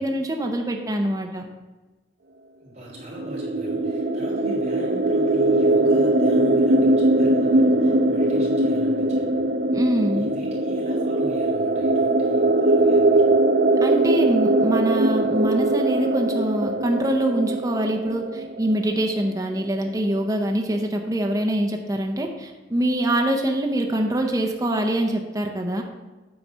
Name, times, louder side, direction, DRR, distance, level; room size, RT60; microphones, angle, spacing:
voice 1, 0.0-1.5 9.7-10.3 13.8-25.8, right 1 dB, 20° right, 2 dB, 0.7 m, -24 dB
voice 2, 2.6-9.5 10.1-13.2, equal, 40° right, -5 dB, 3.0 m, -41 dB
sound 1, 3.1-18.8, right 2 dB, 55° right, 0.5 m, -21 dB
8.8 x 4.2 x 6.1 m, 1.2 s
head